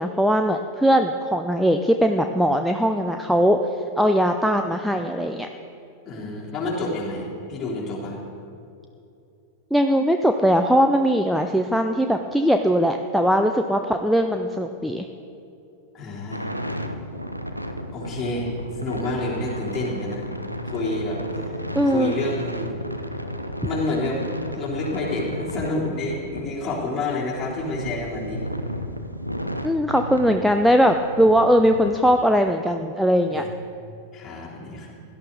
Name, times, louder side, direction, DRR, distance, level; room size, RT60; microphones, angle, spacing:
voice 1, 0.0-3.6 4.0-5.5 9.7-15.1 21.8-22.1 29.6-33.4, equal, ahead, 5 dB, 0.5 m, -20 dB
voice 2, 6.1-8.2 15.9-16.5 17.9-18.5 18.8-20.2 20.6-22.7 23.6-28.4 33.3-33.5 34.1-35.0, left 2 dB, 25° left, -5 dB, 3.6 m, -29 dB
sound 1, 16.3-31.9, equal, 90° right, 0.8 m, -33 dB
17.0 x 12.0 x 4.1 m, 2.7 s
figure-of-eight pair, 90°, 0 cm